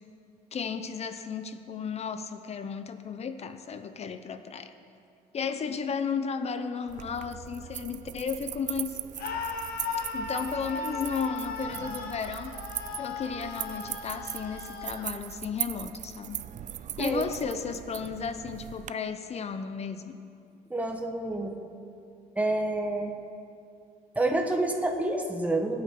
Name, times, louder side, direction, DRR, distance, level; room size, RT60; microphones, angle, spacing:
voice 1, 0.5-4.7 5.3-9.0 10.1-12.5 13.0-16.4 17.0-20.2, left 6 dB, 40° left, 9 dB, 0.8 m, -34 dB
sound 1, 6.9-18.9, right 11 dB, 45° right, 0.4 m, -39 dB
Screaming, 9.2-15.1, left 4 dB, 65° left, 1.5 m, -37 dB
voice 2, 20.7-21.5 22.4-23.1 24.1-25.8, right 2 dB, 10° right, 2 dB, 1.3 m, -28 dB
20.5 x 8.8 x 3.8 m, 2.5 s
cardioid pair, 110°, 17 cm